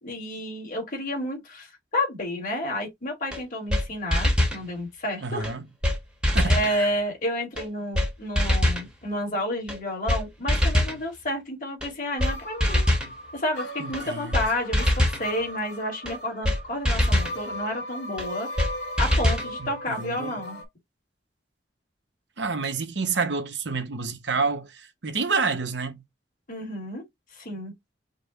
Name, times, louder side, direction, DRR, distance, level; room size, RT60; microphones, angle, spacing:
voice 1, 0.0-5.5 6.4-12.9 13.3-18.6 19.0-20.6 26.5-27.0 27.3-27.7, left 1 dB, 45° left, 2.2 m, -30 dB
sound 1, 3.3-3.4 3.7-3.8 4.1-4.6 5.4-5.5 5.8-6.0 6.2-6.7 7.6-7.7 7.9-8.1 8.3-8.8 9.7-9.8 10.1-10.2 10.5-11.0 11.8-11.9 12.2-12.3 12.6-13.1 13.9-14.0 14.3-14.5 14.7-15.2 16.1-16.2 16.4-16.6 16.8-17.3 18.2-18.3 18.6-18.7 19.0-19.5, left 1 dB, 5° right, 1.0 m, -22 dB
voice 2, 5.2-5.6 6.3-6.9 13.8-14.4 19.6-20.4 22.4-26.0, right 4 dB, 75° right, 1.0 m, -29 dB
sound 2, 12.2-20.6, equal, 70° left, 1.9 m, -37 dB
5.3 x 2.3 x 4.0 m
head